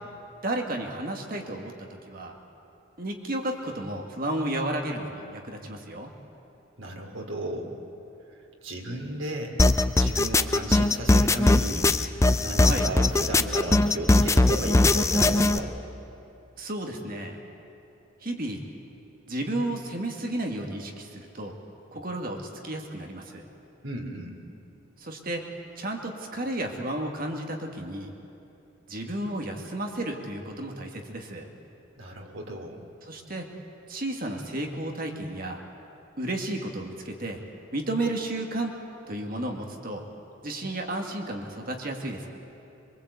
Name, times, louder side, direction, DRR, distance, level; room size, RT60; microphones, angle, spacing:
voice 1, 0.4-2.3 3.0-6.1 12.6-12.9 16.6-17.4 18.2-18.6 19.3-21.6 21.9-22.4 22.6-23.4 25.0-25.4 25.8-28.1 28.9-31.5 33.1-33.5 33.9-35.6 36.2-37.4 37.7-38.7 39.1-40.0 40.4-42.3, right 1 dB, 45° right, 2 dB, 2.2 m, -32 dB
voice 2, 6.8-7.8 8.6-9.6 10.0-11.9 12.4-15.8 23.8-24.4 32.0-32.8, right 1 dB, 70° right, 1 dB, 3.1 m, -34 dB
sound 1, 9.6-15.6, left 2 dB, 15° left, 0.5 m, -20 dB
23.0 x 23.0 x 8.4 m, 2.8 s
head